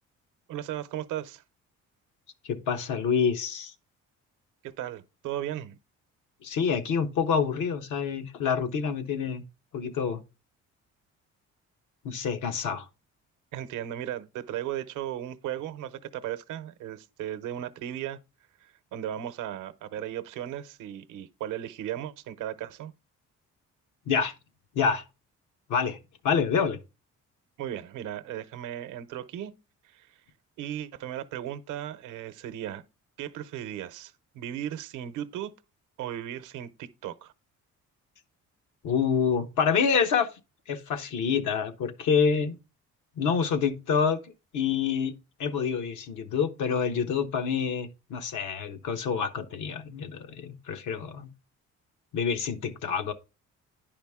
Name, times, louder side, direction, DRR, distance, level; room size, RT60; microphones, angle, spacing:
voice 1, 0.5-1.4 4.6-5.8 13.5-18.2 18.6-22.9 27.6-29.5 29.8-30.1 30.6-32.8 33.2-35.5 36.0-37.3 42.3-42.4, right 11 dB, 90° right, 0.8 m, -36 dB
voice 2, 2.4-3.7 6.4-9.4 9.7-10.2 12.0-12.9 24.1-24.3 24.7-25.0 25.7-26.0 26.2-26.8 38.8-40.3 40.7-42.6 43.2-44.2 44.5-45.1 45.4-51.3 52.1-53.1, left 6 dB, 80° left, 1.1 m, -27 dB
10.0 x 5.1 x 3.6 m
cardioid pair, 90°, 30 cm